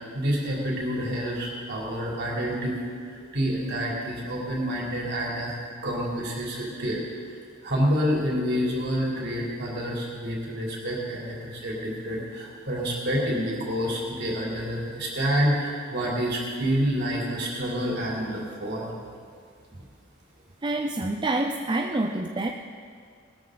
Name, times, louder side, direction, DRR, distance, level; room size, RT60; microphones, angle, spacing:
voice 1, 0.1-2.8 3.0-7.0 7.6-18.9, equal, 55° right, -4 dB, 3.5 m, -28 dB
voice 2, 20.6-22.5, right 2 dB, 25° right, 3 dB, 0.5 m, -27 dB
19.5 x 13.0 x 4.0 m, 2.2 s
head